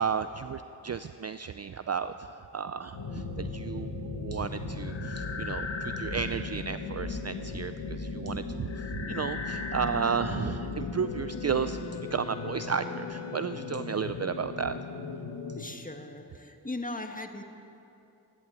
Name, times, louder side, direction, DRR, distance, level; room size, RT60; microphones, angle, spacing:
voice 1, 0.0-11.8 12.1-14.8, right 6 dB, 35° right, 11 dB, 0.5 m, -33 dB
sound 1, 2.9-15.6, left 4 dB, 60° left, 2.0 m, -36 dB
Wind instrument woodwind instrument, 10.4-14.5, left 12 dB, 90° left, 0.9 m, -46 dB
voice 2, 15.5-17.4, left 2 dB, 15° left, 5 dB, 1.6 m, -38 dB
14.0 x 11.0 x 8.2 m, 2.8 s
cardioid pair, 50°, 48 cm